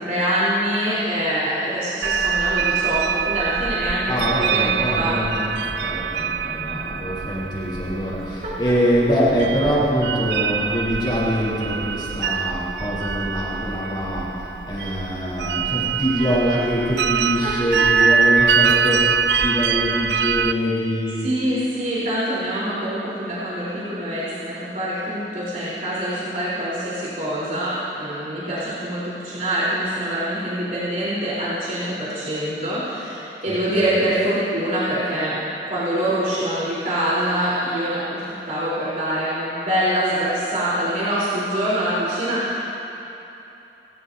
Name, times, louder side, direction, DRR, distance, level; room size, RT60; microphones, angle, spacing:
voice 1, 0.0-5.2 17.4-17.5 21.2-35.3 35.7-42.7, right 1 dB, 50° right, -10 dB, 4.0 m, -25 dB
sound 1, 2.0-20.5, right 6 dB, 80° right, 0.5 m, -24 dB
voice 2, 4.1-21.5 33.4-33.8, equal, 30° left, -8 dB, 3.7 m, -24 dB
29.5 x 13.5 x 2.8 m, 3.0 s
head